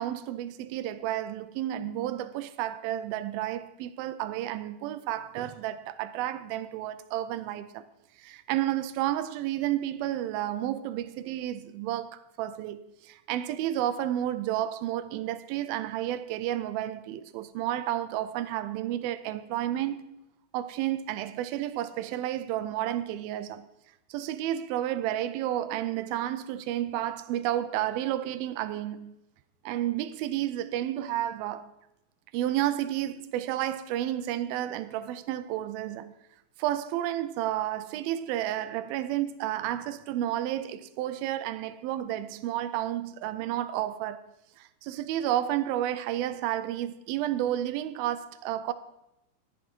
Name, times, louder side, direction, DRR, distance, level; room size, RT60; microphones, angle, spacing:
voice 1, 0.0-7.8 8.2-20.0 20.5-23.7 24.1-29.1 29.7-31.7 32.3-36.1 36.6-44.2 44.6-48.7, right 12 dB, 80° right, 2.4 m, -31 dB
11.0 x 11.0 x 4.5 m
omnidirectional pair, 4.4 m